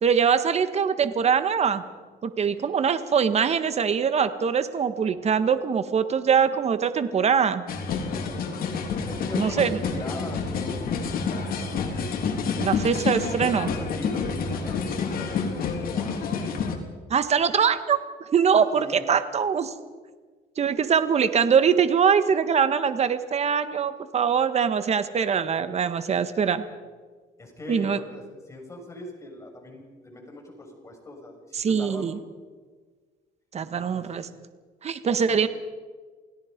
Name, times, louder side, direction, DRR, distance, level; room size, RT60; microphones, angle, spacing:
voice 1, 0.0-1.8 2.2-7.6 9.3-9.8 12.6-13.7 17.1-18.0 18.3-19.7 20.6-26.6 27.7-28.0 31.6-32.2 33.5-34.3 34.8-35.5, right 7 dB, 40° right, 11 dB, 1.6 m, -23 dB
sound 1, 7.7-16.8, left 5 dB, 60° left, 3.4 m, -28 dB
voice 2, 9.1-12.1 13.5-16.4 18.7-19.0 27.4-32.1 33.7-34.2 35.3-35.4, left 1 dB, 15° left, 1 dB, 6.6 m, -41 dB
28.5 x 17.5 x 5.3 m, 1.4 s
cardioid pair, 110°, 17 cm